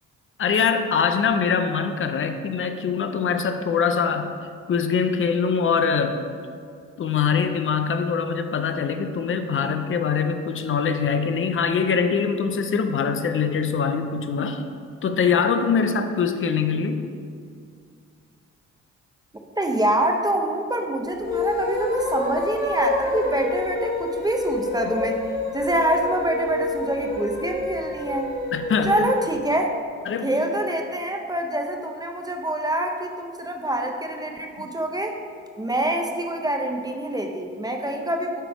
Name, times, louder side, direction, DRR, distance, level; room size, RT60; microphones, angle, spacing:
voice 1, 0.4-4.3 4.7-6.2 7.0-14.7 15.0-17.0 28.5-28.9 30.1-30.3, left 6 dB, 45° left, 7 dB, 0.6 m, -23 dB
voice 2, 19.6-25.2 25.5-28.3 28.9-29.7 30.2-35.2 35.6-38.4, right 1 dB, 15° right, 3 dB, 0.6 m, -25 dB
sound 1, 21.1-29.3, left 2 dB, 85° left, 1.7 m, -28 dB
7.7 x 4.8 x 3.4 m, 2.2 s
cardioid pair, 90°, 30 cm